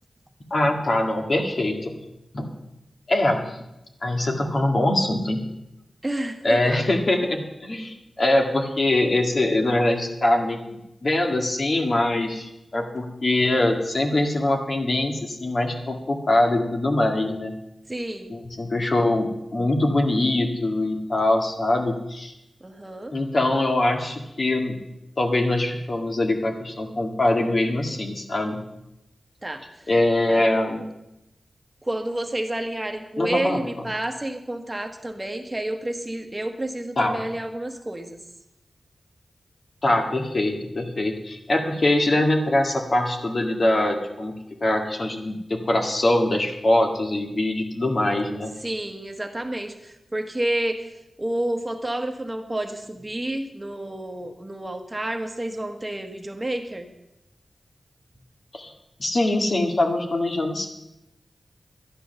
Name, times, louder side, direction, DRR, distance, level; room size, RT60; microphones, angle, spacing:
voice 1, 0.5-1.9 2.3-2.5 3.1-3.6 4.0-5.4 6.4-17.5 18.3-22.3 23.1-24.8 25.2-28.6 29.9-30.8 33.2-33.6 37.0-37.2 39.8-48.5 58.5-58.7 59.0-60.7, left 1 dB, 50° left, 3 dB, 1.9 m, -23 dB
voice 2, 6.0-6.6 17.9-18.3 22.6-23.1 29.4-29.8 30.3-30.5 31.8-38.2 48.6-50.9 51.2-56.9, right 1 dB, 20° right, 5 dB, 1.2 m, -30 dB
11.5 x 10.0 x 6.8 m, 0.89 s
wide cardioid pair, 85°, 0 cm